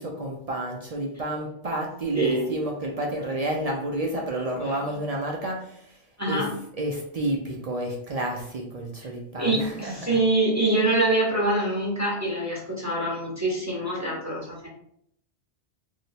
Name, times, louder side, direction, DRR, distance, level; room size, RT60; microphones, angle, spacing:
voice 1, 0.0-5.8 6.3-6.4 6.7-10.2, right 1 dB, 60° right, 0 dB, 0.4 m, -30 dB
voice 2, 2.1-2.5 4.6-5.0 6.2-6.5 9.4-14.7, right 2 dB, 20° right, -5 dB, 0.7 m, -25 dB
2.8 x 2.1 x 4.0 m, 0.71 s
omnidirectional pair, 1.2 m